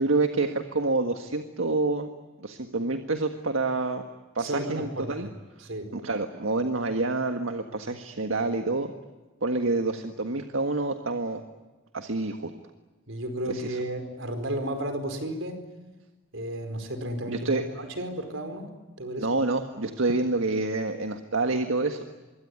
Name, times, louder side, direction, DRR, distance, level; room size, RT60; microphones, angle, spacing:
voice 1, 0.0-2.1 2.4-4.0 4.3-5.3 5.9-8.9 9.4-11.4 11.9-12.5 13.5-13.8 17.3-17.6 19.2-22.0, right 3 dB, 90° right, 6 dB, 1.7 m, -27 dB
voice 2, 4.4-5.3 5.6-5.9 13.1-15.6 16.3-18.7 19.0-19.3, right 1 dB, 75° right, 7 dB, 4.7 m, -33 dB
25.5 x 23.5 x 9.6 m, 1.2 s
head